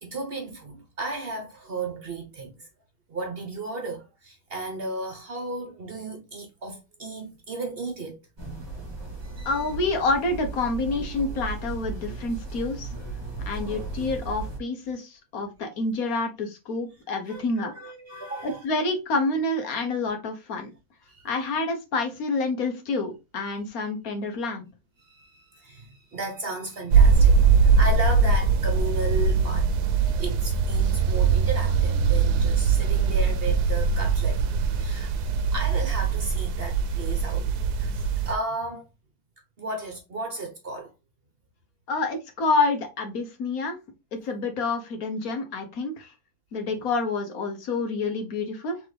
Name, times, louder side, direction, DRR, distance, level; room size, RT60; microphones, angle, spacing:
voice 1, 0.0-2.7 3.1-8.2 17.3-18.6 21.1-21.3 25.0-29.7 30.2-38.9 39.6-40.9, right 2 dB, 45° right, 1.0 m, -34 dB
sound 1, 8.4-14.6, right 3 dB, 20° right, 1.1 m, -36 dB
voice 2, 9.4-12.9 13.5-17.7 18.4-20.7 21.2-24.6 41.9-43.8 44.1-46.1 46.5-48.8, left 3 dB, 65° left, 1.4 m, -28 dB
sound 2, 26.9-38.3, right 5 dB, 90° right, 1.2 m, -21 dB
3.9 x 3.4 x 3.2 m
omnidirectional pair, 1.6 m